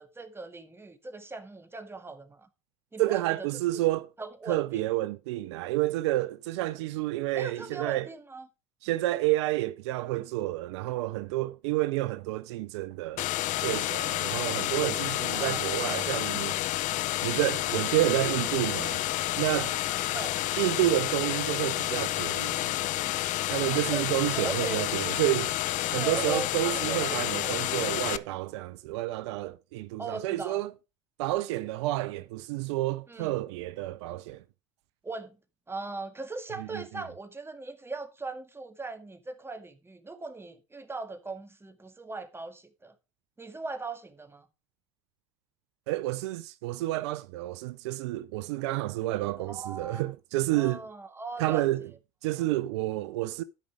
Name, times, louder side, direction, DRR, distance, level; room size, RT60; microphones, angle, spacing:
voice 1, 0.0-2.5 2.9-3.5 4.2-4.8 7.3-8.5 15.3-15.7 20.1-20.4 23.6-24.8 26.0-27.6 30.0-30.6 33.1-33.3 35.0-35.4 35.7-42.9 43.4-44.5 49.4-50.1 50.5-51.7, right 3 dB, 15° right, 1.8 m, -39 dB
voice 2, 3.0-4.1 4.5-8.1 8.8-13.3 13.6-16.6 17.2-19.0 19.4-19.8 20.6-22.7 23.5-25.5 25.9-30.7 31.2-34.4 36.6-37.0 45.9-50.8 51.4-51.8 52.2-53.4, right 17 dB, 80° right, 0.5 m, -30 dB
sound 1, 13.2-28.2, left 16 dB, 60° left, 0.6 m, -30 dB
12.5 x 5.3 x 4.7 m
hypercardioid pair, 70°, 14 cm